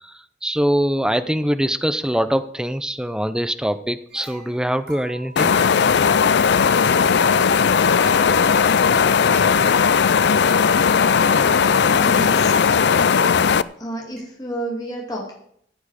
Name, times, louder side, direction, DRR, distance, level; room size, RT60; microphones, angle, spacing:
voice 1, 0.0-5.5, equal, 5° right, 10 dB, 0.5 m, -23 dB
sound 1, 4.1-13.3 13.7-13.8 14.2-14.3, right 2 dB, 55° right, 5.6 m, -43 dB
sound 2, 5.4-13.6, left 6 dB, 65° left, 0.4 m, -17 dB
voice 2, 11.8-12.5 13.8-15.4, right 1 dB, 20° left, -2 dB, 2.4 m, -30 dB
15.0 x 8.7 x 5.0 m, 0.67 s
head